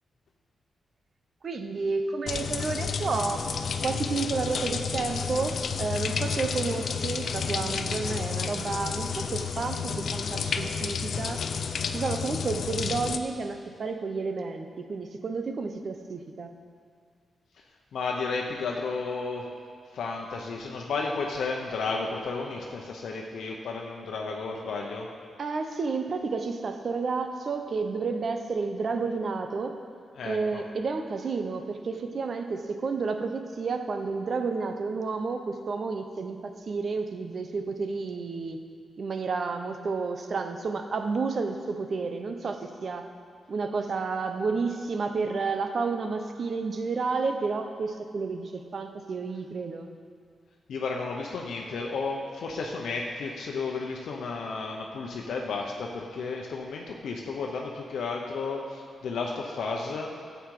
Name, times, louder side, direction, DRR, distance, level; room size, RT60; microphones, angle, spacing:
voice 1, 1.4-3.5 3.8-11.4 11.9-16.5 25.4-29.8 30.2-38.6 39.0-43.1 43.5-49.9, right 4 dB, 50° right, 6 dB, 0.8 m, -31 dB
sound 1, 2.3-13.2, left 6 dB, 60° left, 0.5 m, -31 dB
voice 2, 17.9-19.5 19.9-25.1 30.1-30.6 50.7-60.1, left 4 dB, 80° left, 0 dB, 0.9 m, -33 dB
13.0 x 8.0 x 4.8 m, 2.1 s
wide cardioid pair, 125°, 0 cm